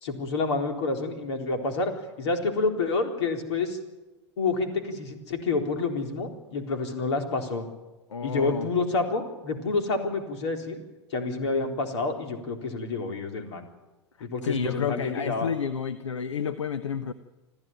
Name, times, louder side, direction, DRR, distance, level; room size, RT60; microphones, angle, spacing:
voice 1, 0.0-1.9 2.2-3.8 4.4-7.7 8.2-10.8 11.1-13.7 14.2-15.5, left 3 dB, 70° left, 4 dB, 4.0 m, -28 dB
voice 2, 8.1-8.7 14.2-17.1, left 7 dB, 85° left, 13 dB, 0.9 m, -30 dB
26.5 x 14.5 x 9.2 m, 1.1 s
hypercardioid pair, 95°, 15 cm